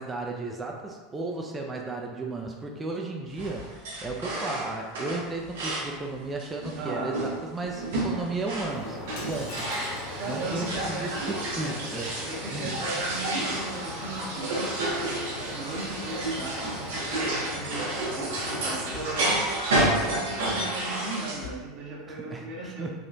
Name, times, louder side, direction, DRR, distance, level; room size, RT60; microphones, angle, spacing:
voice 1, 0.0-9.0 9.3-9.6 10.0-12.7 22.1-22.9, right 3 dB, 20° right, 1 dB, 0.4 m, -34 dB
sound 1, 3.3-6.0 6.4-21.5, right 1 dB, 85° right, 0.9 m, -31 dB
voice 2, 6.8-7.2 10.2-11.1 12.2-17.9 18.1-22.9, right 2 dB, 60° right, -3 dB, 0.9 m, -37 dB
sound 2, 8.7-19.2, left 2 dB, 40° left, 1.0 m, -40 dB
sound 3, 9.2-10.1, left 2 dB, 65° left, 0.6 m, -43 dB
3.5 x 2.4 x 2.6 m, 1.3 s
hypercardioid pair, 95°, 0 cm